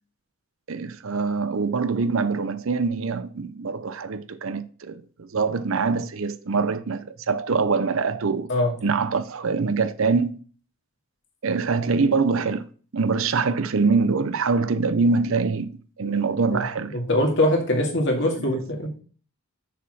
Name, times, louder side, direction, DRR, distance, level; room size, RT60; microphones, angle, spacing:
voice 1, 0.7-8.5 8.8-10.4 11.4-12.7 12.9-15.7 16.0-17.0, right 4 dB, 65° right, 0.6 m, -24 dB
voice 2, 16.5-19.0, left 1 dB, 55° left, 2.2 m, -23 dB
6.7 x 4.9 x 6.2 m
head